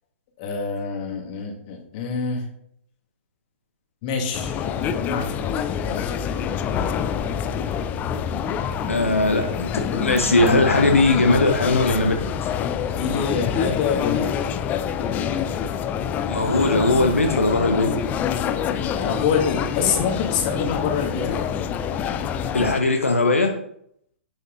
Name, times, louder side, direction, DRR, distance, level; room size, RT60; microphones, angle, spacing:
voice 1, 0.4-2.5 4.0-6.2 12.9-14.3 18.9-21.5, left 6 dB, 40° left, 0 dB, 1.8 m, -26 dB
sound 1, 4.3-22.8, left 8 dB, 25° left, 0.4 m, -26 dB
voice 2, 8.9-12.1 16.3-17.9 22.5-23.5, left 2 dB, 85° left, 4 dB, 0.7 m, -19 dB
10.0 x 5.2 x 2.6 m, 0.72 s
figure-of-eight pair, 115°, 7 cm